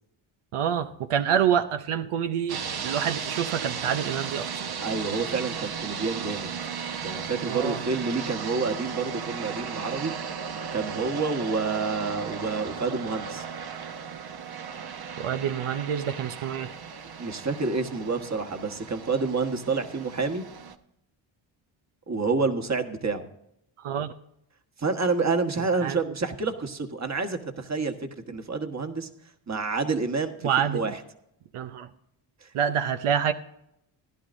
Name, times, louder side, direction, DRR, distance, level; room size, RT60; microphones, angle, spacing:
voice 1, 0.5-4.6 7.5-7.8 15.2-16.7 23.8-24.1 25.8-26.0 30.4-30.8 31.5-31.9 32.5-33.3, right 8 dB, 85° right, 9 dB, 0.7 m, -27 dB
sound 1, 2.5-20.7, right 6 dB, 50° right, 0.9 m, -35 dB
voice 2, 4.8-6.5 7.0-10.1 10.7-13.4 17.2-20.4 22.1-23.3 24.8-27.9 28.3-29.1 29.5-31.0 32.4-32.5, right 4 dB, 35° right, 6 dB, 1.4 m, -28 dB
16.0 x 11.0 x 2.6 m, 0.78 s
cardioid pair, 65°, 50 cm